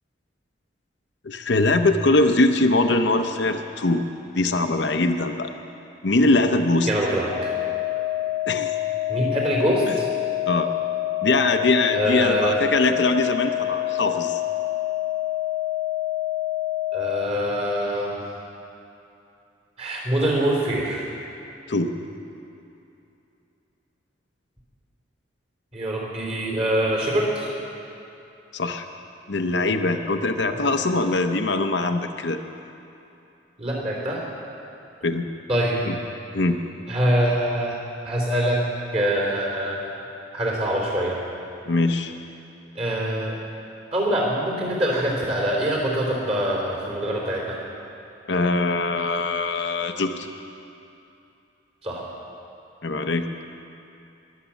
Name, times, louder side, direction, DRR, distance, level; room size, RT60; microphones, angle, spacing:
voice 1, 1.2-4.1 4.3-5.5 6.0-6.9 8.5-8.7 9.9-10.0 10.5-10.7 11.2-14.4 21.7-21.9 28.5-28.8 29.3-32.4 35.0-35.3 35.9-36.0 36.3-36.6 41.7-42.1 48.3-50.3 52.8-53.3, left 2 dB, 65° left, 6 dB, 0.8 m, -22 dB
voice 2, 6.9-7.5 9.1-10.1 11.9-12.6 16.9-18.2 19.8-21.0 25.7-27.5 30.5-30.6 33.6-34.2 35.5-35.8 36.9-38.6 38.9-39.9 40.3-41.2 42.8-43.3 43.9-47.6 51.8-52.0, right 1 dB, 35° right, -2 dB, 3.6 m, -24 dB
sound 1, 7.3-17.3, left 15 dB, 65° right, 1.6 m, -27 dB
21.5 x 7.5 x 7.2 m, 2.8 s
head